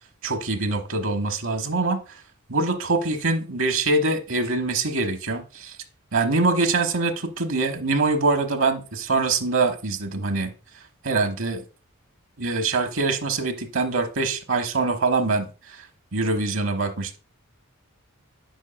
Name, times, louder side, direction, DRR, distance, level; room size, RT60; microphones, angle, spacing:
voice 1, 0.2-2.2 2.5-5.8 6.1-10.5 11.0-11.6 12.4-15.8 16.1-17.2, right 3 dB, 65° right, 1.0 m, -24 dB
8.6 x 6.2 x 2.2 m
head